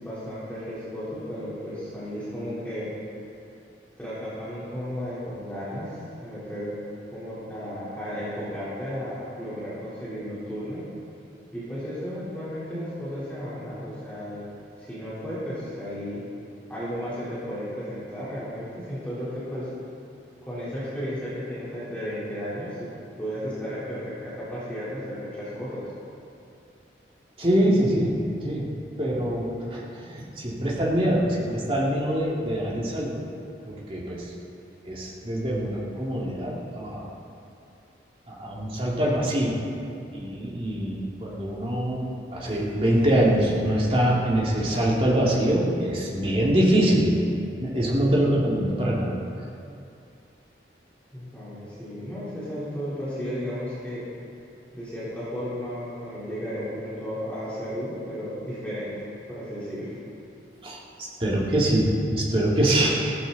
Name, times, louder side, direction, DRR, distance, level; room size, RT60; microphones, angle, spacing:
voice 1, 0.0-2.9 4.0-6.7 7.1-10.8 11.5-14.4 14.8-16.2 16.7-19.7 20.5-22.9 23.2-25.9 51.1-54.0 54.7-59.0 59.3-59.9, equal, 10° left, -12 dB, 4.1 m, -34 dB
voice 2, 27.4-28.2 28.4-28.7 29.0-33.1 33.7-34.2 34.9-37.0 38.3-39.6 40.1-47.1 47.6-49.1 60.6-60.8 61.2-63.2, right 1 dB, 30° right, -5 dB, 2.6 m, -24 dB
16.0 x 14.5 x 4.2 m, 2.6 s
head